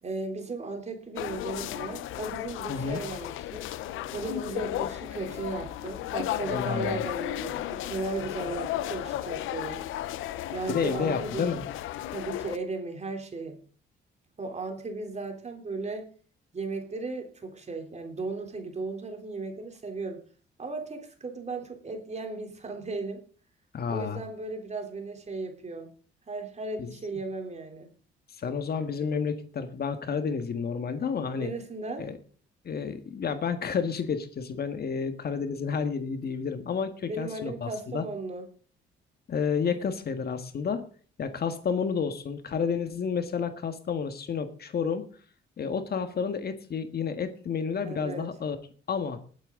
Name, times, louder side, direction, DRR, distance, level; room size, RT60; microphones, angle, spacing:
voice 1, 0.0-3.6 4.1-9.8 10.5-11.5 12.1-13.6 14.4-16.1 16.5-20.2 20.6-23.2 23.9-25.9 26.3-27.9 31.3-32.1 37.0-38.5 47.8-48.3, right 3 dB, 35° right, 5 dB, 3.4 m, -36 dB
sound 1, 1.2-12.6, left 13 dB, 90° left, 0.7 m, -34 dB
voice 2, 2.7-3.0 6.5-7.0 10.7-11.6 23.7-24.2 26.8-26.9 28.4-31.5 32.0-32.2 32.6-38.1 39.3-40.8 41.2-45.1 45.6-48.6 48.9-49.2, left 6 dB, 50° left, 8 dB, 1.7 m, -30 dB
19.5 x 9.1 x 3.8 m, 0.40 s
cardioid pair, 90°, 20 cm